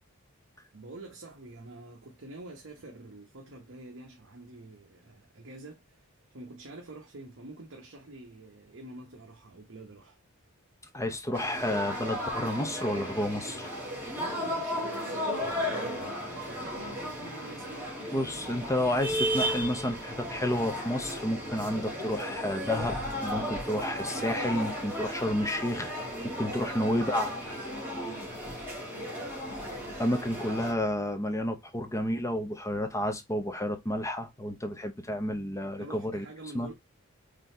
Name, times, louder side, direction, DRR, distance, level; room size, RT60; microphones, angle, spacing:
voice 1, 0.7-10.2 14.2-18.1 28.9-29.2 35.6-36.7, right 2 dB, 60° right, 0.9 m, -46 dB
voice 2, 10.9-13.7 18.1-23.0 23.2-25.9 26.2-27.3 30.0-36.2 36.5-36.7, left 1 dB, 15° left, 0.7 m, -30 dB
sound 1, 11.3-30.7, equal, 10° right, 1.5 m, -35 dB
3.9 x 3.2 x 2.7 m
head